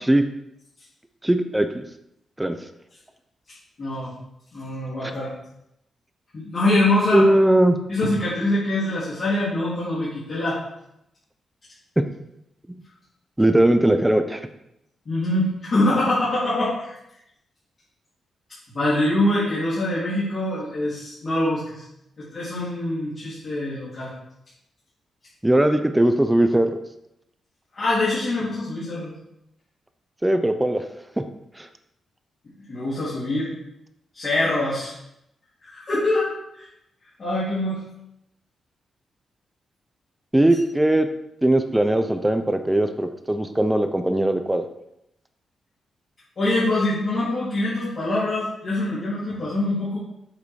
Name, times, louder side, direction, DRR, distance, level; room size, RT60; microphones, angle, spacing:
voice 1, 1.2-1.8 2.4-2.6 7.1-7.8 12.0-12.1 13.4-14.5 25.4-26.8 30.2-30.9 31.2-31.3 31.6-31.7 40.3-41.1 41.4-44.7, right 1 dB, 5° right, 8 dB, 0.6 m, -19 dB
voice 2, 3.8-4.1 4.5-5.3 6.3-7.3 7.9-10.6 15.1-17.0 18.7-21.8 22.2-24.1 27.7-29.1 32.7-33.5 34.1-34.9 35.6-36.3 36.6-36.7 37.2-37.8 46.4-50.0, left 1 dB, 40° left, -11 dB, 3.6 m, -24 dB
8.6 x 6.5 x 4.8 m, 0.81 s
wide cardioid pair, 160°, 0 cm